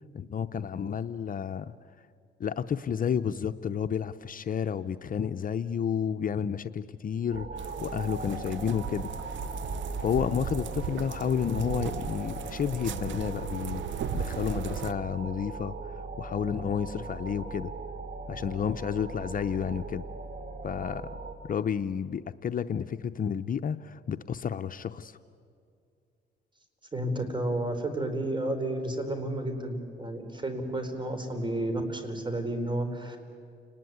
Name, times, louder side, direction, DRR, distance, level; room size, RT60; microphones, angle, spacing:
voice 1, 0.1-1.7 2.4-9.1 10.0-17.7 18.3-20.1 20.6-21.2 21.4-25.2, left 7 dB, 45° left, 10 dB, 0.7 m, -31 dB
sound 1, 7.3-21.3, right 3 dB, 50° right, 3.7 m, -39 dB
sound 2, 7.6-14.9, right 8 dB, 70° right, 1.0 m, -37 dB
voice 2, 26.9-33.2, right 1 dB, 25° right, 7 dB, 4.3 m, -31 dB
29.5 x 20.0 x 9.5 m, 2.4 s
cardioid pair, 90°, 20 cm